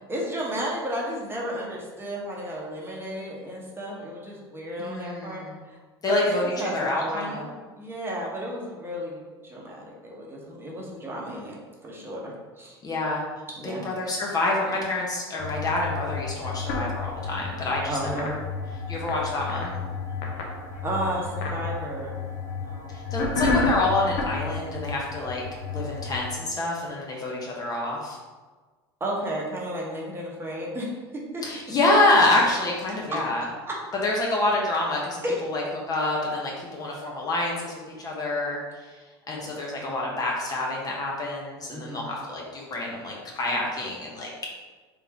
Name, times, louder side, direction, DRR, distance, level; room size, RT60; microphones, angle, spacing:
voice 1, 0.1-5.8 6.1-7.5 7.8-11.5 11.8-12.8 13.6-13.8 17.9-18.3 20.8-22.2 22.6-23.0 29.0-30.9 31.3-31.4 33.1-33.2 33.7-33.8 35.2-35.4 39.4-40.1 41.7-42.1, right 1 dB, 15° right, -3 dB, 1.0 m, -33 dB
voice 2, 4.8-5.6 6.0-7.4 12.8-18.4 18.9-19.7 22.9-25.4 25.7-28.2 31.4-33.5 34.0-39.0 39.3-44.4, left 2 dB, 25° left, -2 dB, 0.8 m, -27 dB
sound 1, 15.4-26.3, left 3 dB, 55° left, 0.8 m, -31 dB
3.6 x 3.5 x 2.9 m, 1.3 s
figure-of-eight pair, 75°, 14 cm